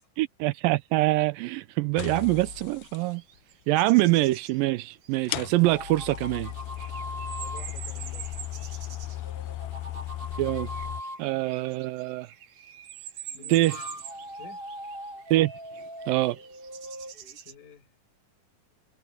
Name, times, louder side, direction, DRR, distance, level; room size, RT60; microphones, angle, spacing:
voice 1, 0.2-3.2 3.7-6.5 10.4-10.7 11.2-12.3 13.5-13.8 15.3-15.5 16.1-16.4, right 18 dB, 80° right, 2.2 m, -24 dB
sound 1, 2.0-3.0 4.3-4.4 5.3-11.0, left 15 dB, 85° left, 2.4 m, -36 dB
sound 2, 3.1-9.3 10.3-17.5, right 10 dB, 60° right, 2.9 m, -45 dB
sound 3, 5.4-7.6 9.1-11.2 13.4-17.4, equal, 15° right, 7.8 m, -41 dB
voice 2, 7.4-8.3 13.3-13.8 14.4-14.6 17.5-17.9, left 6 dB, 65° left, 6.3 m, -49 dB
omnidirectional pair, 4.2 m